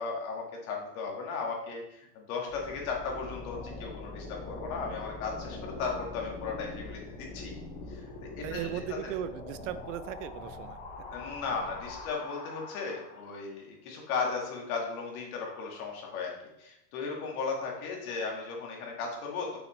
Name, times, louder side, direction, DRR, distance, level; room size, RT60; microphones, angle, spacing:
voice 1, 0.0-7.5 7.9-8.0 8.4-8.7 9.0-9.1 11.1-16.3 16.6-19.6, left 4 dB, 60° left, 0 dB, 2.1 m, -36 dB
sound 1, 2.5-13.5, left 3 dB, 20° left, 1.0 m, -43 dB
voice 2, 8.4-10.8, right 10 dB, 55° right, 13 dB, 0.5 m, -37 dB
6.3 x 6.0 x 3.3 m, 0.84 s
supercardioid pair, 160°, 48 cm